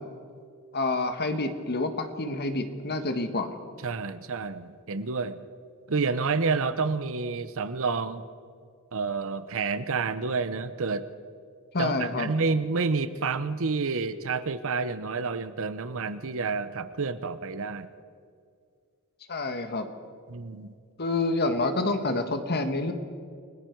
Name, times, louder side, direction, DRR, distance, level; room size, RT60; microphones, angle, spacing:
voice 1, 0.7-3.5 11.7-12.3 19.3-19.9 21.0-22.9, left 2 dB, 50° left, 7 dB, 1.6 m, -28 dB
voice 2, 3.8-5.4 5.9-8.2 8.9-11.1 11.8-17.9 20.3-20.7, right 4 dB, 65° right, 13 dB, 0.9 m, -29 dB
29.5 x 19.0 x 4.7 m, 2.2 s
head